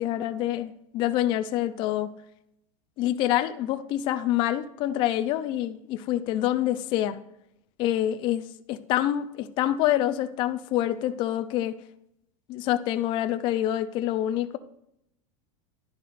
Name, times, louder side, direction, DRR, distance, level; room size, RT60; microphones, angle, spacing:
voice 1, 0.0-2.1 3.0-7.2 7.8-11.8 12.5-14.6, left 12 dB, 30° left, 0.4 m, -26 dB
11.0 x 10.5 x 2.5 m
supercardioid pair, 175°, 16 cm